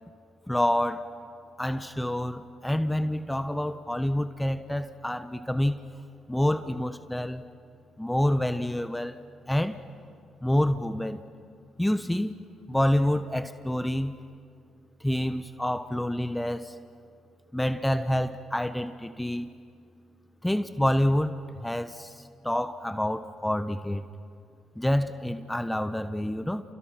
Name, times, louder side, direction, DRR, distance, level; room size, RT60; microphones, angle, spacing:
voice 1, 0.5-1.0 1.6-5.8 6.3-7.4 8.0-9.2 9.5-9.8 10.4-11.2 11.8-12.4 12.7-14.2 15.0-16.7 17.5-19.5 20.4-21.3 21.6-24.1 24.8-26.6, left 1 dB, 5° left, 10 dB, 1.2 m, -27 dB
29.5 x 29.5 x 6.0 m, 2.2 s
supercardioid pair, 55°, 0 cm